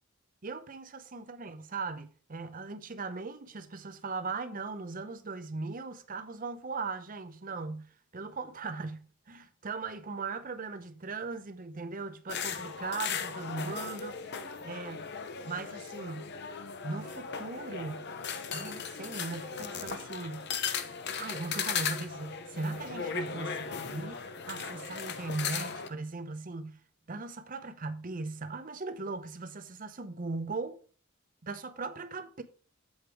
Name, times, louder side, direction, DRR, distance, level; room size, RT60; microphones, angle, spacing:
voice 1, 0.4-14.4 14.6-15.1 15.4-16.3 16.8-18.1 18.5-20.5 21.2-26.8 27.1-30.8 31.4-32.4, right 3 dB, 40° right, 0.8 m, -39 dB
sound 1, 12.3-25.9, left 6 dB, 55° left, 0.8 m, -37 dB
8.0 x 5.1 x 4.6 m
head